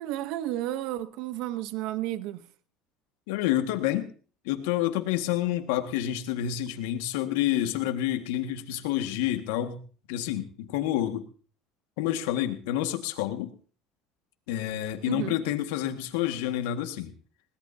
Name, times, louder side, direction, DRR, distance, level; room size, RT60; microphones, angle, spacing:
voice 1, 0.0-2.4 15.1-15.4, right 14 dB, 70° right, 0.9 m, -32 dB
voice 2, 3.3-4.1 4.5-9.8 10.1-11.2 12.0-13.5 14.5-17.1, left 12 dB, 85° left, 1.8 m, -28 dB
20.5 x 18.0 x 2.8 m
supercardioid pair, 95°, 0 cm